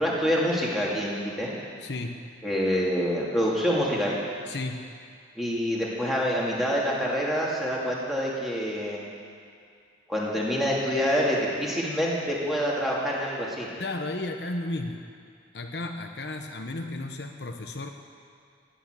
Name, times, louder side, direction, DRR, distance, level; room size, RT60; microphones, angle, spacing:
voice 1, 0.0-1.5 2.4-4.2 5.4-9.0 10.1-13.7, equal, ahead, -5 dB, 2.6 m, -26 dB
voice 2, 1.8-2.2 4.5-4.9 13.8-15.0 15.5-17.9, left 2 dB, 65° left, 4 dB, 0.9 m, -33 dB
15.0 x 9.8 x 8.1 m, 2.2 s
head